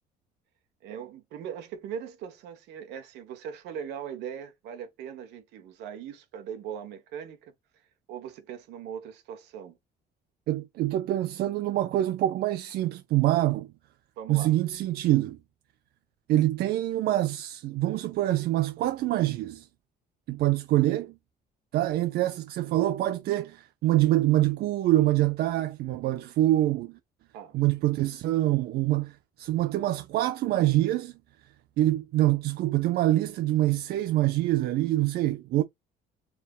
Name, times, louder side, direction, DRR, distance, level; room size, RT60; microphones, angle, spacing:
voice 1, 0.8-7.5 8.1-9.8 14.2-14.5 27.3-27.6, right 8 dB, 85° right, 1.3 m, -40 dB
voice 2, 10.5-13.7 14.3-15.4 16.3-19.7 20.3-21.1 21.7-26.9 27.5-31.1 31.8-35.6, right 15 dB, 70° right, 0.5 m, -25 dB
4.5 x 3.4 x 2.4 m
cardioid pair, 110°, 17 cm